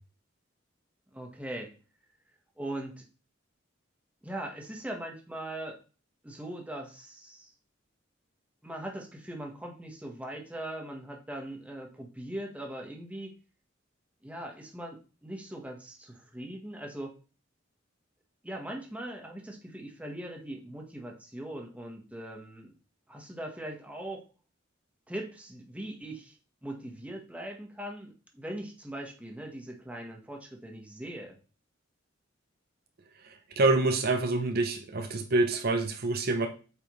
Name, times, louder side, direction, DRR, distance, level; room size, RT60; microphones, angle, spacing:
voice 1, 1.1-1.7 2.6-3.0 4.2-5.8 6.2-7.5 8.6-13.3 14.2-17.1 18.4-22.7 23.1-24.2 25.1-26.4 26.6-31.3, right 1 dB, 5° right, 1 dB, 1.2 m, -40 dB
voice 2, 33.2-36.5, right 2 dB, 50° right, 5 dB, 0.7 m, -27 dB
8.1 x 4.4 x 3.1 m, 0.35 s
head